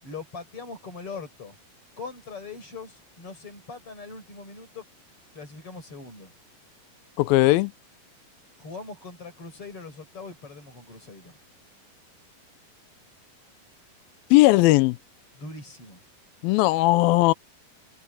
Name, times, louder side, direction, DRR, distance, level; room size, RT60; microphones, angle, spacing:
voice 1, 0.0-1.6 2.0-4.8 5.3-6.3 8.6-11.4 15.3-16.0, left 4 dB, 35° left, 6.4 m, -41 dB
voice 2, 7.2-7.7 14.3-15.0 16.4-17.3, left 19 dB, 80° left, 2.4 m, -18 dB
omnidirectional pair, 4.3 m